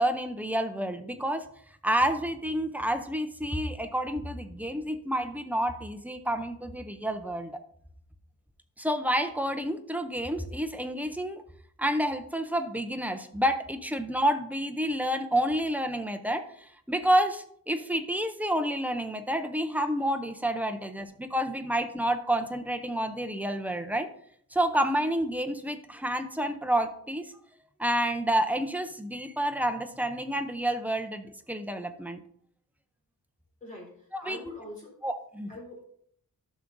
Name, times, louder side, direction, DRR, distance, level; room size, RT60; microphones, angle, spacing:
voice 1, 0.0-1.5 1.8-7.6 8.8-11.4 11.8-24.1 24.5-27.3 27.8-32.2 34.1-34.4 35.0-35.5, right 1 dB, 5° right, 6 dB, 0.4 m, -29 dB
voice 2, 33.6-34.9 35.5-35.9, left 1 dB, 20° left, -5 dB, 3.4 m, -43 dB
12.0 x 5.9 x 2.6 m, 0.65 s
wide cardioid pair, 170°, 35 cm